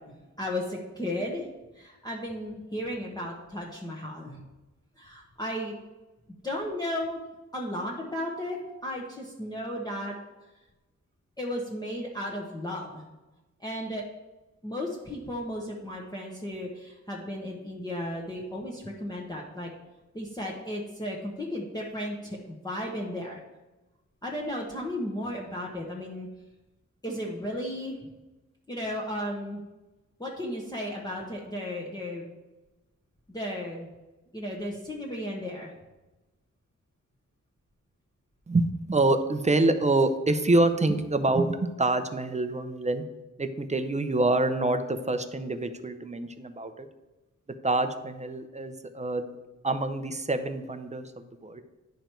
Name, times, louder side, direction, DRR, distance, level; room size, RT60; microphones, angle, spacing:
voice 1, 0.1-1.4 1.8-4.4 5.0-5.7 6.4-7.2 7.5-10.1 11.4-13.0 13.6-14.0 14.6-19.7 20.1-23.4 24.2-26.3 27.0-28.0 28.7-29.6 30.2-32.3 33.3-33.9 34.3-35.7, left 1 dB, 15° left, -3 dB, 1.1 m, -34 dB
voice 2, 38.5-43.0 43.4-46.9 47.6-49.3 49.6-51.6, right 2 dB, 25° right, 9 dB, 0.6 m, -26 dB
10.5 x 5.1 x 4.5 m, 1.1 s
wide cardioid pair, 115°, 30 cm